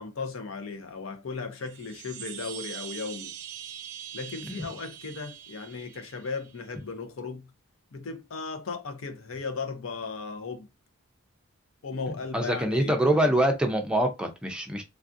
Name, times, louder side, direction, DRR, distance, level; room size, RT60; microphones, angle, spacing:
voice 1, 0.0-3.3 4.1-7.5 7.9-10.7 11.8-13.0 13.2-13.3, left 4 dB, 75° left, 0.6 m, -36 dB
sound 1, 1.6-6.6, right 10 dB, 85° right, 0.5 m, -43 dB
voice 2, 12.3-14.8, right 1 dB, 5° right, 0.4 m, -25 dB
3.2 x 2.4 x 2.6 m
head